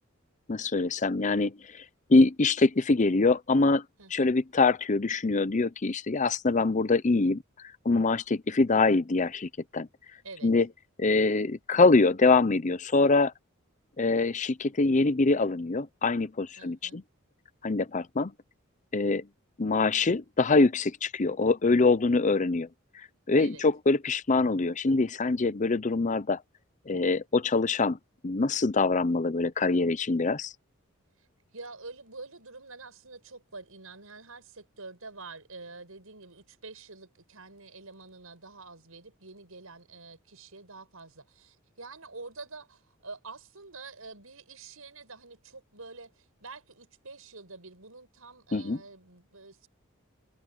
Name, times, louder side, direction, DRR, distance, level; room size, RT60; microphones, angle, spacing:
voice 1, 0.5-1.8 2.1-3.8 4.1-7.4 7.8-9.9 10.4-10.7 11.0-13.3 14.0-17.0 17.6-18.3 18.9-19.3 19.6-22.7 23.3-26.4 26.9-28.0 28.2-30.5 48.5-48.8, left 3 dB, 35° left, 0.6 m, -24 dB
voice 2, 4.0-4.4 10.2-10.5 16.6-17.0 23.4-23.6 31.2-31.3 31.5-49.7, right 3 dB, 85° right, 6.1 m, -47 dB
head